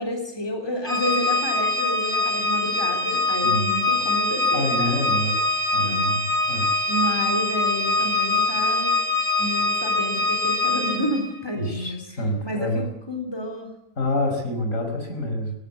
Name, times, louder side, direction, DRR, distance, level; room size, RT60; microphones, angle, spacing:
voice 1, 0.0-5.3 5.8-6.4 6.9-9.0 9.4-12.0 12.4-13.7, equal, 15° left, 3 dB, 3.7 m, -30 dB
Organ, 0.9-11.3, left 2 dB, 20° right, 3.0 m, -23 dB
voice 2, 4.5-5.4 5.7-6.7 11.5-12.8 14.0-15.5, left 1 dB, 65° left, 2 dB, 5.3 m, -27 dB
19.5 x 16.0 x 8.4 m, 0.76 s
omnidirectional pair, 1.5 m